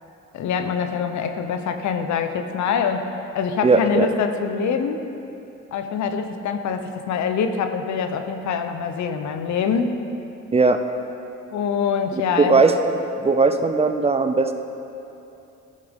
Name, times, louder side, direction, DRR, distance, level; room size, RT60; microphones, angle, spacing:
voice 1, 0.3-3.1 3.3-5.0 5.7-9.9 11.5-12.7, left 6 dB, 70° left, 7 dB, 0.7 m, -24 dB
voice 2, 3.6-4.1 10.5-10.8 12.1-14.5, right 3 dB, 20° right, 7 dB, 0.4 m, -19 dB
13.5 x 6.6 x 3.6 m, 2.8 s
cardioid pair, 90°, 30 cm